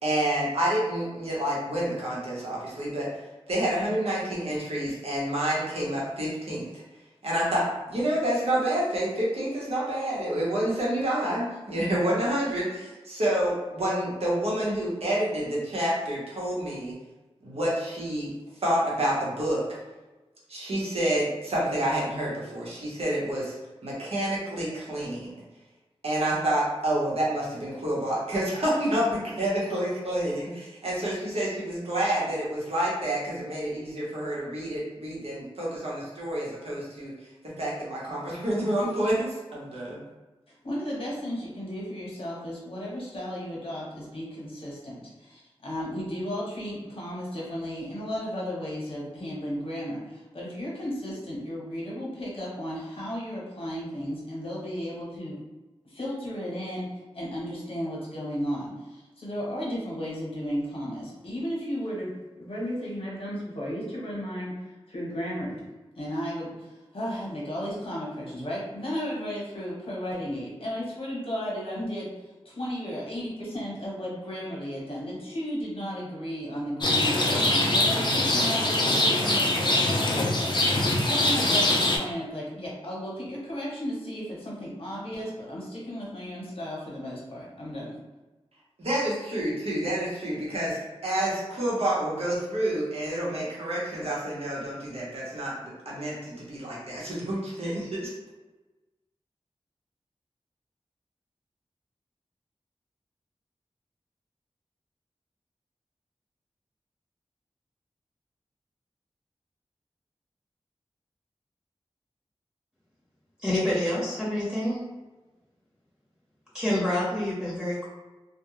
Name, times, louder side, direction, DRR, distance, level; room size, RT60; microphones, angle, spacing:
voice 1, 0.0-3.1 3.5-6.8 7.2-16.9 17.4-18.3 18.6-19.7 20.5-23.5 23.8-25.3 26.0-37.1 37.6-40.0 88.8-98.1, right 1 dB, 75° right, -6 dB, 0.9 m, -28 dB
voice 2, 40.5-55.4 55.8-56.9 57.1-62.1 62.4-65.6 66.0-88.0, equal, 60° left, -5 dB, 0.9 m, -34 dB
Rain, 76.8-82.0, left 1 dB, 45° left, 0.4 m, -23 dB
voice 3, 113.4-114.8 116.5-117.9, left 1 dB, 10° right, -8 dB, 1.0 m, -27 dB
2.3 x 2.2 x 3.0 m, 1.2 s
wide cardioid pair, 85°, 10 cm